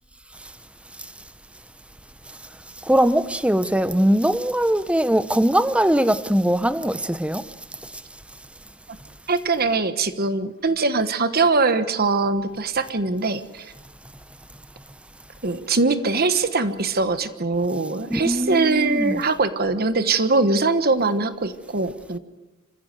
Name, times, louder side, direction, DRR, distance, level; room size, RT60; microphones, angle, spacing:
voice 1, 2.9-7.4 18.1-19.2, right 1 dB, 5° right, 0.7 m, -21 dB
voice 2, 9.3-13.7 15.4-22.2, right 3 dB, 50° right, 1.3 m, -22 dB
27.0 x 15.5 x 7.9 m
head